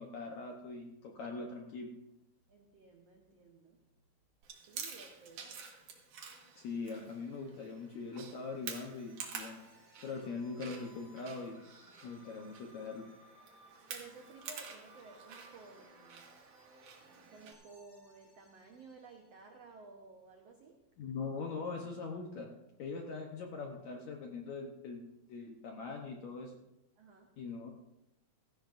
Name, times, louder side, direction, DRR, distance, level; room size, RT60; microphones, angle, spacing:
voice 1, 0.0-1.9 6.6-9.6 10.0-11.6 12.0-13.0 21.0-22.5 22.8-26.5 27.4-27.7, left 4 dB, 70° left, 2 dB, 1.8 m, -42 dB
voice 2, 2.5-3.8 4.7-5.5 13.9-16.3 17.3-20.8 27.0-27.3, right 4 dB, 80° right, 2 dB, 1.4 m, -55 dB
Chewing mastication, 4.4-17.5, right 6 dB, 60° right, 2.7 m, -49 dB
sound 1, 5.2-19.5, right 1 dB, 10° left, 2.9 m, -65 dB
16.5 x 15.0 x 2.6 m, 0.90 s
omnidirectional pair, 4.5 m